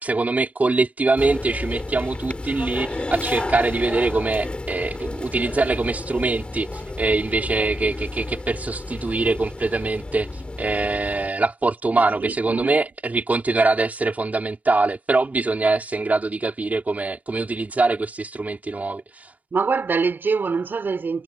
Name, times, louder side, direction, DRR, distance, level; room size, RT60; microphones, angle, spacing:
voice 1, 0.0-19.3, right 3 dB, 50° right, 3.1 m, -23 dB
sound 1, 1.2-11.3, left 2 dB, 35° left, 2.8 m, -31 dB
voice 2, 12.2-12.8 19.5-21.2, right 5 dB, 80° right, 4.0 m, -24 dB
cardioid pair, 45°, 3 cm